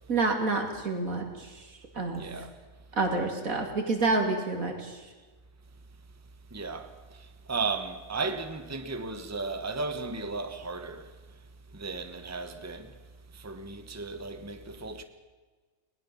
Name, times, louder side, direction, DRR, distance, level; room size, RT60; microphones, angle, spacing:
voice 1, 0.1-1.7 2.0-2.2 2.9-5.0, right 3 dB, 80° right, 3.4 m, -28 dB
voice 2, 2.1-2.5 6.5-11.1 11.7-13.0 13.3-15.0, right 3 dB, 10° right, 1.2 m, -35 dB
20.0 x 19.5 x 7.2 m
omnidirectional pair, 1.4 m